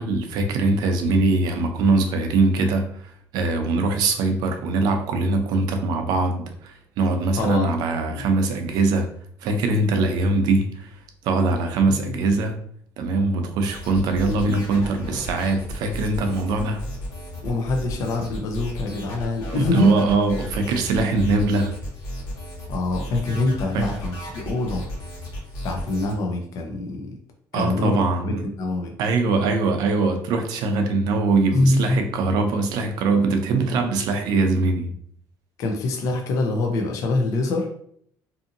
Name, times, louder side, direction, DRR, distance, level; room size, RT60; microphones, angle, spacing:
voice 1, 0.0-9.1 9.4-11.0 11.2-12.6 13.0-16.8 19.5-21.8 23.7-23.9 27.5-28.4 29.0-34.9, right 3 dB, 65° right, 5 dB, 0.5 m, -22 dB
voice 2, 7.3-7.7 8.1-8.2 11.9-12.2 17.4-19.9 22.7-24.9 25.6-27.1 27.5-28.0 28.2-28.9 31.5-32.1 35.6-37.7, left 2 dB, 45° left, 2 dB, 0.5 m, -25 dB
sound 1, 13.6-26.1, equal, 65° left, 1.3 m, -34 dB
2.6 x 2.6 x 2.6 m, 0.64 s
cardioid pair, 165°, 8 cm